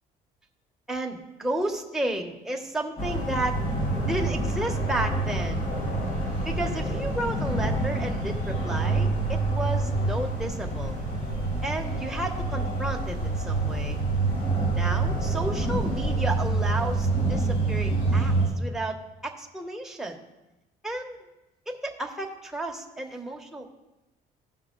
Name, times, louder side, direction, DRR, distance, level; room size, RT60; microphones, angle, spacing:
voice 1, 0.9-3.6 4.0-5.7 6.4-11.0 11.6-14.0 14.7-20.2 20.8-21.2 21.7-23.7, right 1 dB, ahead, 1 dB, 1.2 m, -32 dB
sound 1, 3.0-18.5, right 2 dB, 55° left, 4.0 m, -27 dB
15.5 x 5.8 x 3.9 m, 1.0 s
cardioid pair, 110°, 17 cm